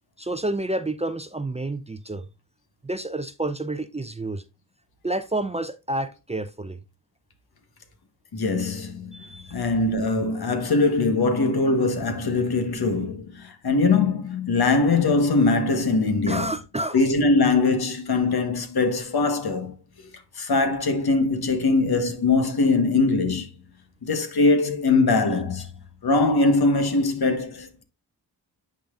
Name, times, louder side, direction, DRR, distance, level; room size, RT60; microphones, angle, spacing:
voice 1, 0.2-2.3 2.8-4.4 5.0-6.8 9.1-9.6 16.3-17.1, right 2 dB, 15° right, 0.6 m, -29 dB
voice 2, 8.3-9.2 9.5-16.5 16.9-19.7 20.4-23.5 24.0-25.7 26.0-27.8, left 3 dB, 65° left, 1.4 m, -22 dB
10.0 x 3.9 x 2.5 m
cardioid pair, 45°, 41 cm